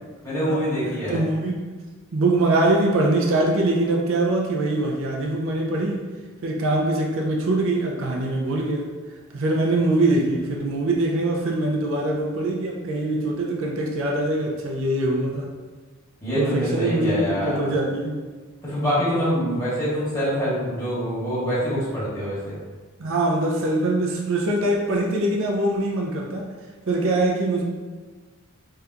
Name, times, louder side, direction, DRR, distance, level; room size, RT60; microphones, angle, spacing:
voice 1, 0.2-1.2 16.2-17.6 18.6-22.6, equal, 15° left, -11 dB, 1.3 m, -25 dB
voice 2, 1.1-1.6 2.1-6.1 6.4-8.9 9.3-15.6 16.3-18.2 23.0-26.5 26.9-27.6, right 2 dB, 65° right, -1 dB, 0.5 m, -23 dB
3.4 x 2.8 x 2.4 m, 1.4 s
head